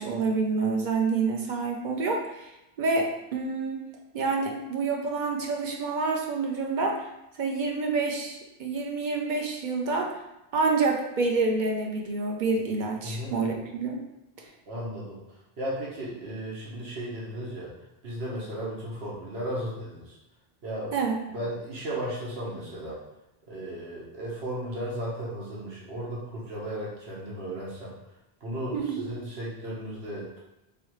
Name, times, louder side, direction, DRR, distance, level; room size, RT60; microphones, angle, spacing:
voice 1, 0.0-2.5 2.8-3.8 4.1-7.1 7.4-10.1 10.5-14.0 20.9-21.2 28.7-29.0, right 4 dB, 55° right, 1 dB, 0.7 m, -27 dB
voice 2, 13.0-13.3 14.7-17.7 18.0-20.2 20.6-20.9 21.2-23.0 23.5-28.0 28.4-30.4, right 1 dB, 90° right, -5 dB, 1.3 m, -35 dB
3.6 x 3.2 x 3.0 m, 0.89 s
omnidirectional pair, 1.0 m